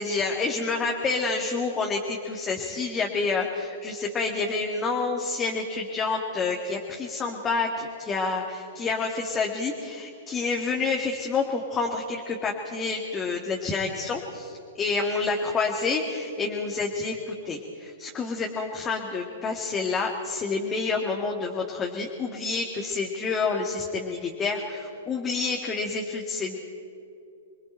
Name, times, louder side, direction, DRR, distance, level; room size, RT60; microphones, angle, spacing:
voice 1, 0.0-26.6, left 4 dB, 20° left, 0 dB, 1.9 m, -28 dB
28.5 x 22.5 x 4.5 m, 2.6 s
figure-of-eight pair, 105°, 0 cm